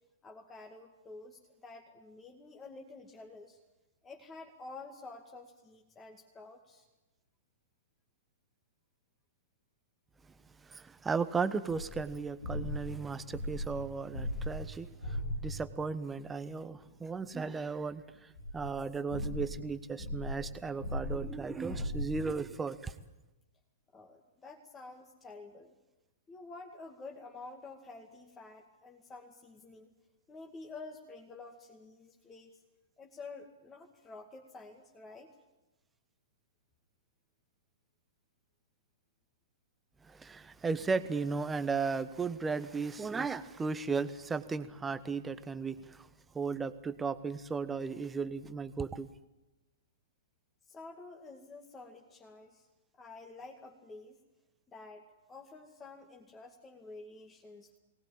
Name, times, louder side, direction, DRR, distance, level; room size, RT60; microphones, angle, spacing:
voice 1, 0.2-3.6 4.0-6.8 23.9-25.7 26.3-29.9 30.3-32.6 33.0-35.3 50.7-52.7 53.0-54.2 54.7-57.8, left 3 dB, 15° left, 2 dB, 2.3 m, -50 dB
voice 2, 10.7-15.2 15.4-23.0 40.0-46.1 46.3-49.1, right 4 dB, 10° right, 13 dB, 1.2 m, -35 dB
sound 1, 11.7-15.8 18.4-22.5, left 1 dB, 70° left, 4.3 m, -39 dB
23.0 x 19.5 x 8.8 m, 1.0 s
figure-of-eight pair, 110°, 0 cm